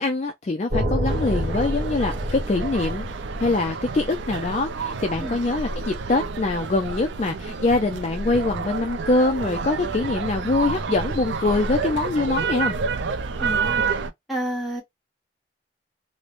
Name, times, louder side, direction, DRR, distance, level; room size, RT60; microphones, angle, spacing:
voice 1, 0.0-3.0 3.4-12.8, left 3 dB, 35° left, 0.3 m, -24 dB
sound 1, 0.7-4.8, equal, 50° right, 0.9 m, -29 dB
sound 2, 1.1-14.1, right 4 dB, 70° right, 0.4 m, -29 dB
voice 2, 14.3-14.8, equal, ahead, 1.1 m, -29 dB
3.1 x 2.1 x 2.4 m
head